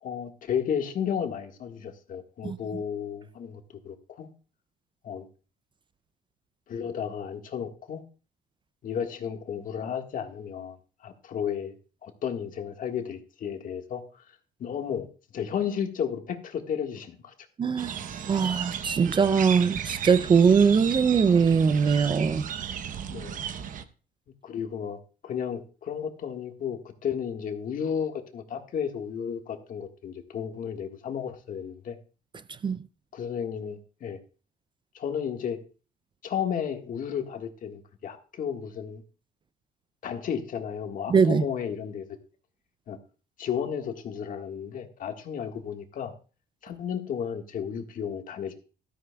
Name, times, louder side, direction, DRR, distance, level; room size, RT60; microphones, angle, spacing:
voice 1, 0.0-4.3 5.0-5.3 6.7-8.0 8.8-10.8 11.0-11.7 12.0-15.1 15.3-17.3 23.1-23.4 24.4-32.0 33.1-34.2 34.9-35.6 36.2-39.0 40.0-42.0 42.9-43.0 43.4-46.1 46.6-48.5, left 8 dB, 55° left, 1.6 m, -33 dB
voice 2, 17.6-18.0 18.3-22.5 32.6-32.8 41.1-41.4, right 6 dB, 30° right, 0.4 m, -21 dB
sound 1, 17.8-23.8, right 8 dB, 50° right, 0.9 m, -35 dB
13.5 x 13.0 x 2.3 m
cardioid pair, 110°, 17 cm